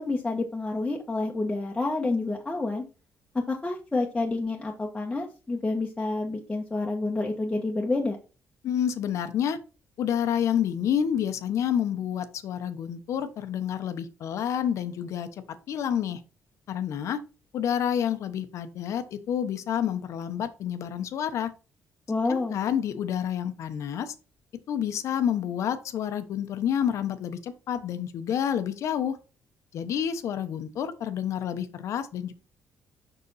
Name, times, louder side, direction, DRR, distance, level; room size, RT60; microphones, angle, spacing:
voice 1, 0.0-2.8 3.3-8.2 22.1-22.6, left 2 dB, 15° left, -1 dB, 1.3 m, -28 dB
voice 2, 8.6-9.6 10.0-16.2 16.7-17.2 17.5-21.5 22.3-24.1 24.7-29.2 29.7-32.3, left 9 dB, 65° left, 9 dB, 1.1 m, -29 dB
6.9 x 6.1 x 4.2 m, 0.33 s
cardioid pair, 140°, 5 cm